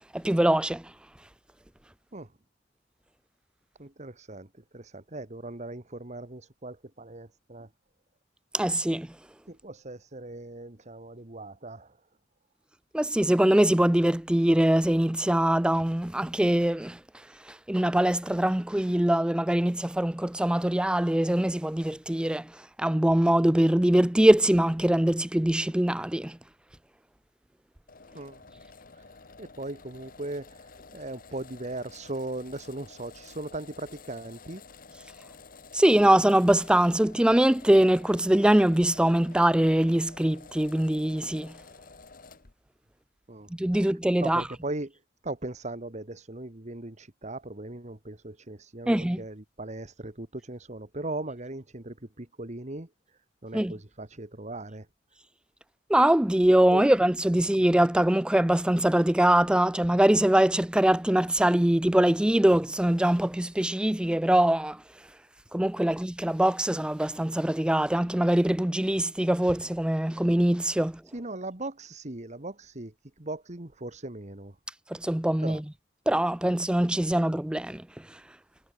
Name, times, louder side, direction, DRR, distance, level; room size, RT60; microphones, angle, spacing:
voice 1, 0.1-0.8 8.5-9.1 12.9-17.0 17.7-22.5 22.8-26.4 35.7-41.5 43.5-44.4 48.9-49.2 53.5-53.7 55.9-64.8 65.5-71.0 74.9-75.6 76.1-77.8, right 1 dB, 5° right, 0.4 m, -23 dB
voice 2, 3.8-4.5 4.7-7.7 9.5-12.0 28.1-28.4 28.9-29.1 29.4-34.6 43.3-43.9 44.2-52.9 53.4-54.9 56.7-56.9 65.8-66.0 71.1-74.6 75.4-75.6, right 2 dB, 40° right, 2.0 m, -39 dB
sound 1, 27.9-42.5, left 4 dB, 50° left, 1.5 m, -50 dB
head